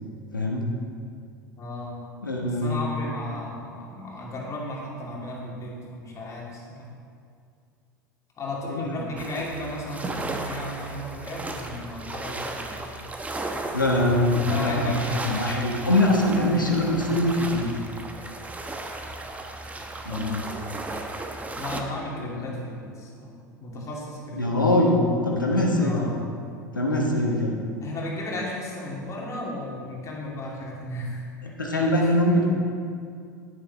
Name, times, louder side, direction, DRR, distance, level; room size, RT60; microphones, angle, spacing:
voice 1, 0.3-0.7 2.2-2.9 8.7-9.0 13.7-17.7 20.0-20.4 22.2-22.6 24.3-26.1 26.7-27.6 31.4-32.5, left 1 dB, 85° left, -1 dB, 1.3 m, -23 dB
voice 2, 1.6-2.0 2.6-6.9 8.4-13.0 14.4-15.5 20.0-20.8 21.6-23.3 23.6-24.4 25.8-26.2 27.8-31.2, left 1 dB, 30° left, -3 dB, 2.7 m, -34 dB
sound 1, 9.2-21.8, right 2 dB, 15° right, 1.0 m, -35 dB
10.5 x 10.0 x 4.2 m, 2.3 s
figure-of-eight pair, 75°, 10 cm